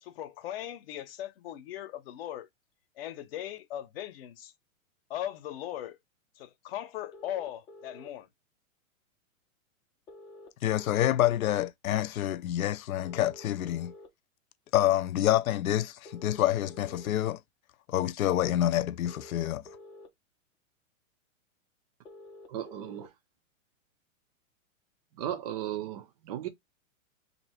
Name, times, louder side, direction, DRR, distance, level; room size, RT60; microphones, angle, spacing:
voice 1, 0.0-2.5 3.0-4.5 5.1-6.0 6.4-8.3, left 12 dB, 45° left, 0.9 m, -39 dB
sound 1, 7.1-8.1 10.1-11.1 13.0-14.1 16.0-17.1 19.0-20.1 22.0-23.1, left 1 dB, 10° left, 0.6 m, -49 dB
voice 2, 10.6-13.9 14.7-17.4 17.9-19.6, left 13 dB, 80° left, 0.7 m, -27 dB
voice 3, 22.5-23.1 25.2-26.5, right 11 dB, 30° right, 0.5 m, -35 dB
2.9 x 2.7 x 4.3 m
hypercardioid pair, 155°, 41 cm